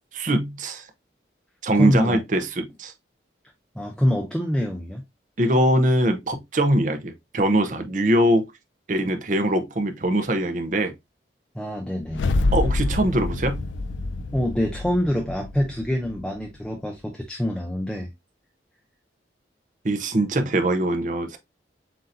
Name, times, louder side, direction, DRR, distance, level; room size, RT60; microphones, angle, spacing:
voice 1, 0.2-0.9 1.6-2.9 5.4-8.5 8.9-10.9 12.5-13.6 19.8-21.4, right 1 dB, 45° right, 0.7 m, -22 dB
voice 2, 1.7-2.2 3.7-5.0 11.5-12.2 14.3-18.1, equal, 5° left, 0.6 m, -25 dB
sound 1, 12.0-16.4, left 2 dB, 85° left, 0.4 m, -27 dB
7.5 x 2.7 x 2.5 m
head